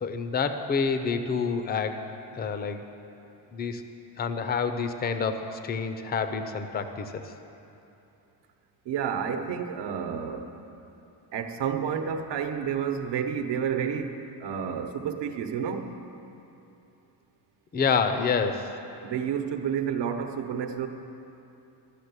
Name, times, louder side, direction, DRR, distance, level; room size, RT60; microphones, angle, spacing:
voice 1, 0.0-2.8 3.5-3.8 4.2-7.2 17.7-18.8, left 5 dB, 20° left, 8 dB, 0.5 m, -28 dB
voice 2, 8.9-10.5 11.3-15.9 19.0-20.9, right 7 dB, 70° right, 6 dB, 1.0 m, -30 dB
13.5 x 6.9 x 9.5 m, 2.8 s
cardioid pair, 175°, 44 cm